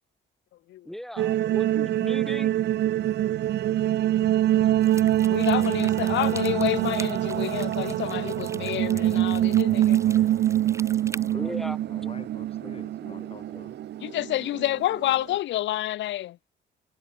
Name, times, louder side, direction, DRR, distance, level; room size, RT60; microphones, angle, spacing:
voice 1, 0.8-2.5 11.3-11.8 12.6-12.7 13.1-13.7, equal, ahead, 3.0 m, -38 dB
sound 1, 1.2-15.3, right 12 dB, 60° right, 0.5 m, -24 dB
sound 2, 4.8-11.3, right 2 dB, 15° right, 3.2 m, -44 dB
voice 2, 5.3-10.4 14.0-16.4, left 14 dB, 70° left, 0.5 m, -29 dB
voice 3, 11.1-13.8, left 4 dB, 30° left, 4.1 m, -47 dB
cardioid pair, 90°, 20 cm